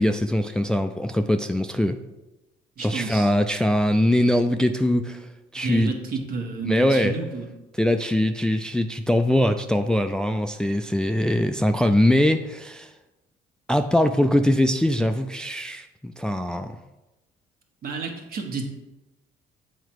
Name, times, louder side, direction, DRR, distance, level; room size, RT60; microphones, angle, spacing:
voice 1, 0.0-2.0 2.8-5.3 5.5-5.9 6.6-7.1 7.8-12.9 13.7-16.8, left 1 dB, 5° left, 7 dB, 0.3 m, -22 dB
voice 2, 2.8-3.3 5.5-7.4 17.8-18.6, right 4 dB, 60° right, 2 dB, 1.5 m, -30 dB
7.8 x 4.6 x 4.6 m, 1.0 s
cardioid pair, 110°, 17 cm